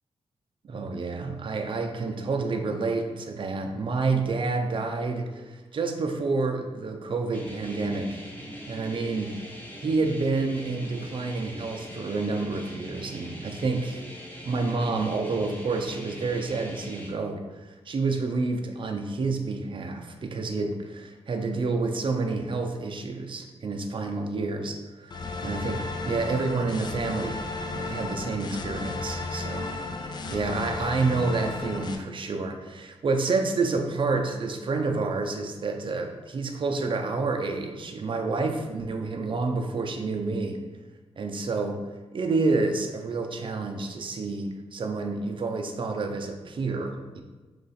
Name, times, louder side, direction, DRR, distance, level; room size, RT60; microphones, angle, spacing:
voice 1, 0.6-8.2 8.7-9.4 9.8-14.0 14.4-27.4 27.7-29.8 30.1-40.6 41.2-41.8 42.1-47.2, right 3 dB, 50° right, 4 dB, 0.5 m, -29 dB
sound 1, 7.3-17.1, equal, 15° left, 0.7 m, -42 dB
sound 2, 25.1-32.0, left 3 dB, 40° left, 0.4 m, -34 dB
2.9 x 2.4 x 4.1 m, 1.3 s
cardioid pair, 70°, 11 cm